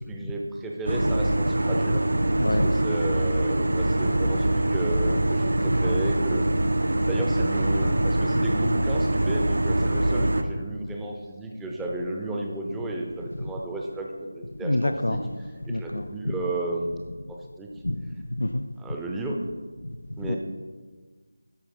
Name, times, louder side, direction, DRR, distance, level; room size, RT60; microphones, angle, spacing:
voice 1, 0.1-2.1 2.6-6.5 7.1-15.2 15.7-17.0 17.3-17.7 18.8-19.4 20.2-20.4, right 2 dB, 5° right, -1 dB, 0.6 m, -33 dB
sound 1, 0.9-10.4, right 1 dB, 60° right, 0.6 m, -23 dB
voice 2, 2.4-2.7 13.4-13.5 14.5-15.3 15.7-16.3 17.8-19.0 19.8-20.4, left 1 dB, 65° left, 10 dB, 0.4 m, -28 dB
12.5 x 4.4 x 4.4 m, 1.4 s
figure-of-eight pair, 165°, 0 cm